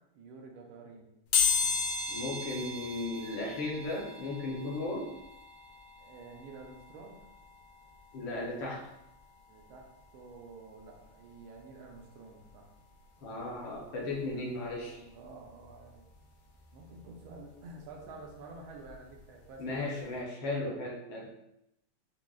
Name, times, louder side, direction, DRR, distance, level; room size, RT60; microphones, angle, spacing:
voice 1, 0.1-1.1 6.0-7.2 9.5-12.7 14.3-16.1 16.7-20.3, right 3 dB, 85° right, 0 dB, 1.5 m, -50 dB
sound 1, 1.3-12.0 12.5-12.6 13.7-13.8 14.1-16.2 16.5-19.2 19.5-19.7 20.0-20.1, left 5 dB, 85° left, 1.7 m, -36 dB
voice 2, 2.1-5.1 8.1-8.9 13.2-15.0 19.6-21.3, left 2 dB, 70° left, -2 dB, 1.4 m, -36 dB
6.0 x 2.0 x 2.3 m, 0.84 s
omnidirectional pair, 2.3 m